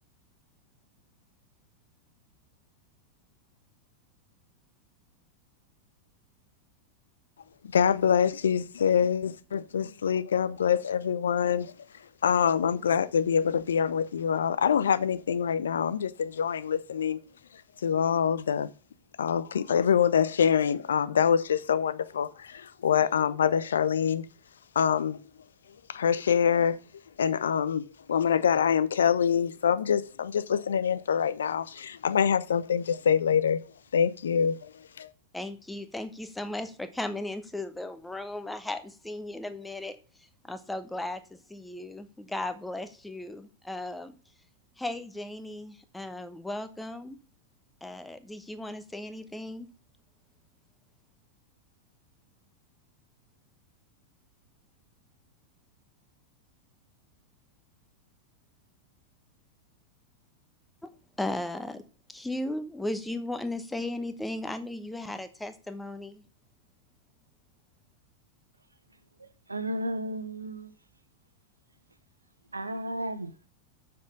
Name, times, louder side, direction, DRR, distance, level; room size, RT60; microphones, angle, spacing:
voice 1, 7.7-11.7 12.2-17.2 17.8-18.7 19.2-24.2 24.7-25.2 25.9-26.8 27.2-33.6 33.9-34.7 35.0-35.1, left 7 dB, 65° left, 0.5 m, -25 dB
voice 2, 35.3-40.0 40.4-44.2 44.8-47.2 47.8-49.7 60.8-60.9 61.2-61.8 62.1-66.2, left 1 dB, 5° left, 0.9 m, -36 dB
voice 3, 69.2-70.7 72.5-73.5, right 1 dB, 80° right, 0.9 m, -34 dB
7.3 x 6.0 x 6.3 m
figure-of-eight pair, 90°, 0 cm